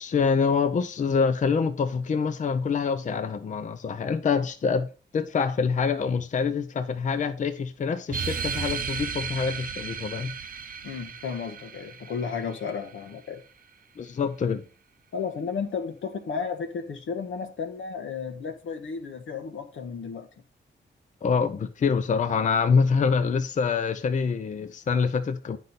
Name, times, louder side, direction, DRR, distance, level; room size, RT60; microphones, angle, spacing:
voice 1, 0.0-10.3 14.0-14.6 21.2-25.6, left 5 dB, 40° left, 0.5 m, -25 dB
sound 1, 8.1-13.1, right 6 dB, 45° right, 0.6 m, -35 dB
voice 2, 10.8-13.4 15.1-20.3, left 6 dB, 85° left, 1.3 m, -33 dB
9.3 x 5.4 x 4.1 m
wide cardioid pair, 145°, 20 cm